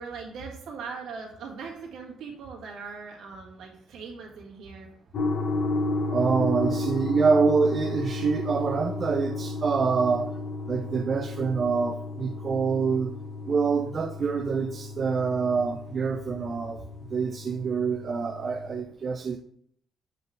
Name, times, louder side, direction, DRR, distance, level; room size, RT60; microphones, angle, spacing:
voice 1, 0.0-4.9, right 5 dB, 75° right, -1 dB, 1.6 m, -40 dB
sound 1, 5.1-18.8, left 2 dB, 50° left, 0.8 m, -33 dB
voice 2, 6.1-10.3 10.7-13.1 13.5-16.9 17.1-19.4, right 5 dB, 35° right, 6 dB, 0.4 m, -26 dB
7.5 x 3.7 x 3.6 m, 0.66 s
cardioid pair, 125°, 0 cm